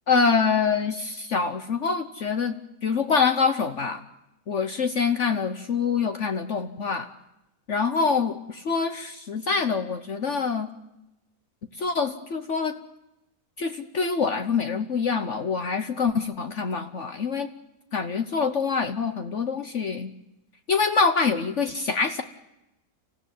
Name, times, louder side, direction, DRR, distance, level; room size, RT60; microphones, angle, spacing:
voice 1, 0.1-4.0 4.5-7.1 7.7-10.7 11.8-12.7 13.6-17.5 17.9-20.1 20.7-22.2, left 5 dB, 55° left, 8 dB, 1.3 m, -25 dB
27.5 x 15.5 x 9.3 m, 0.92 s
omnidirectional pair, 1.6 m